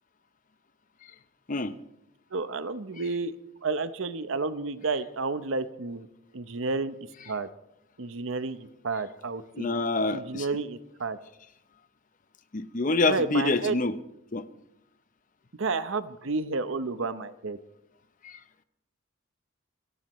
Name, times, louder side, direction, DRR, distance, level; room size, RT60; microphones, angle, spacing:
voice 1, 2.3-3.3 3.6-6.1 6.3-6.9 7.3-7.5 8.0-9.7 10.1-11.2 13.1-13.8 15.6-17.6, right 3 dB, 65° right, 12 dB, 0.8 m, -31 dB
voice 2, 9.5-10.5 12.5-13.9 14.3-14.4 18.2-18.4, left 3 dB, 40° left, 12 dB, 0.7 m, -26 dB
24.5 x 17.0 x 3.1 m, 0.84 s
head